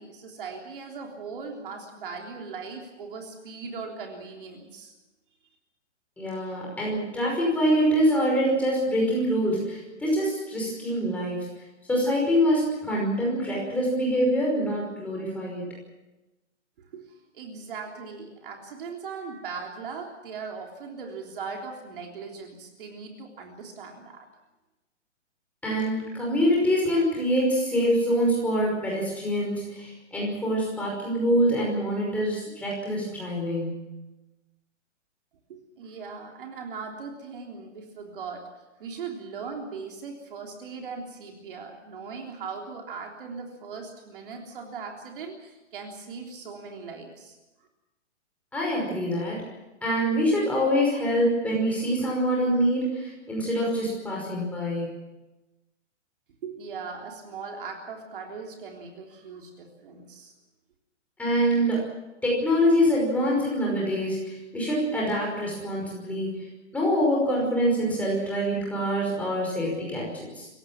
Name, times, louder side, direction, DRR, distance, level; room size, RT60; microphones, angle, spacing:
voice 1, 0.0-4.9 16.8-24.3 35.5-38.5 38.8-47.4 56.4-60.3, right 5 dB, 45° right, 1 dB, 3.5 m, -39 dB
voice 2, 6.2-11.5 11.9-15.7 25.6-33.9 48.5-49.4 49.8-54.9 61.2-61.8 62.2-66.5 66.7-70.5, equal, 5° left, -3 dB, 5.5 m, -25 dB
26.5 x 17.0 x 7.3 m, 1.1 s
hypercardioid pair, 170°, 36 cm